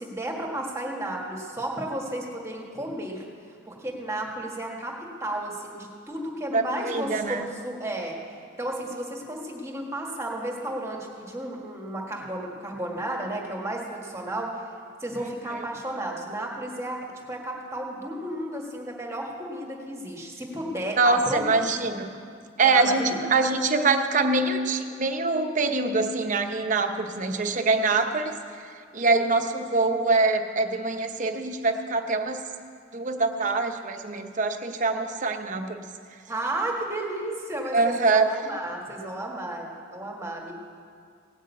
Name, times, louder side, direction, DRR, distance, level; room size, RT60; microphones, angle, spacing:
voice 1, 0.0-3.2 3.7-8.2 8.6-14.5 15.0-17.0 17.3-21.4 22.6-23.2 36.3-40.5, right 1 dB, 15° right, -1 dB, 1.7 m, -33 dB
voice 2, 6.5-7.5 15.5-15.6 21.0-22.1 22.6-28.4 28.9-32.4 32.9-35.8 37.7-38.3, right 3 dB, 40° right, 6 dB, 0.8 m, -24 dB
17.5 x 6.3 x 8.3 m, 2.3 s
head